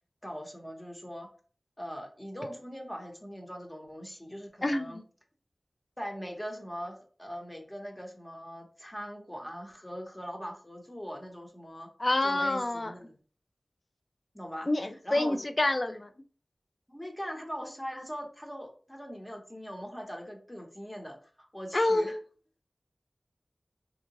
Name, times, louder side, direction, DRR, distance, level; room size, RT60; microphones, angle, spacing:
voice 1, 0.2-1.3 1.8-5.0 6.0-11.9 12.2-13.2 14.3-14.7 15.0-15.4 15.9-16.0 16.9-22.2, equal, 15° left, 1 dB, 0.8 m, -41 dB
voice 2, 4.6-5.0 12.0-12.9 14.7-16.1 21.7-22.2, left 2 dB, 40° left, 9 dB, 0.3 m, -27 dB
3.4 x 2.7 x 2.8 m, 0.42 s
wide cardioid pair, 80°, 0 cm